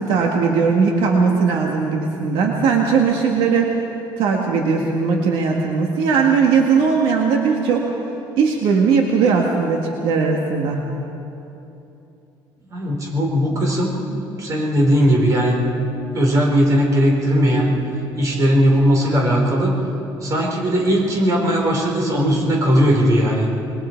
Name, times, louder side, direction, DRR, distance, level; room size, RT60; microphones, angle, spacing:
voice 1, 0.0-3.8 4.2-7.9 8.4-10.8, right 5 dB, 75° right, 1 dB, 1.8 m, -18 dB
voice 2, 12.7-14.0 14.3-15.6 16.1-17.7 18.2-19.8 20.2-23.5, equal, 40° right, -1 dB, 4.3 m, -18 dB
27.0 x 21.5 x 4.6 m, 2.9 s
cardioid pair, 145°, 9 cm